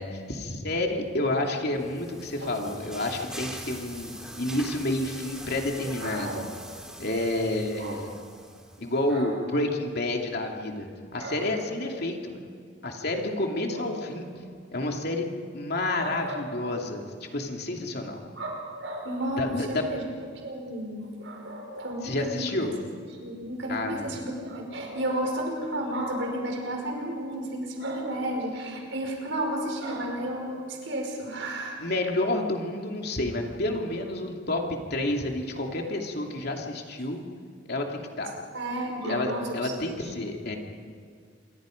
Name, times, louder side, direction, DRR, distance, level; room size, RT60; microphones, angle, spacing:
voice 1, 0.0-6.4 7.0-8.2 8.8-12.4 12.8-14.3 14.7-15.3 15.5-17.1 17.3-18.2 19.4-19.8 22.0-22.7 23.7-24.1 31.8-37.2 37.7-38.4 39.0-40.6, left 1 dB, 60° left, 2 dB, 2.8 m, -29 dB
sound 1, 1.4-9.0, right 1 dB, 5° right, 2.5 m, -43 dB
voice 2, 2.4-3.0 6.0-6.5 7.8-8.0 9.1-9.3 11.2-11.5 13.7-14.0 16.0-16.4 18.4-20.0 20.4-22.7 23.2-31.8 38.5-39.7 40.0-40.1, right 1 dB, 85° right, 1 dB, 5.5 m, -33 dB
27.5 x 24.0 x 5.3 m, 2.1 s
head